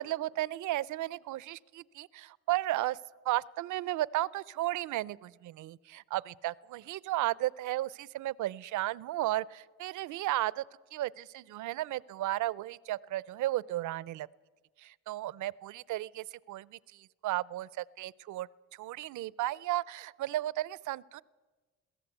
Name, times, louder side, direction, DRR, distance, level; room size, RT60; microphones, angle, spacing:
voice 1, 0.0-3.0 3.2-10.6 10.9-14.3 14.8-18.5 18.8-21.2, right 15 dB, 80° right, 21 dB, 0.6 m, -34 dB
22.0 x 16.5 x 8.0 m, 1.3 s
cardioid pair, 90°, 30 cm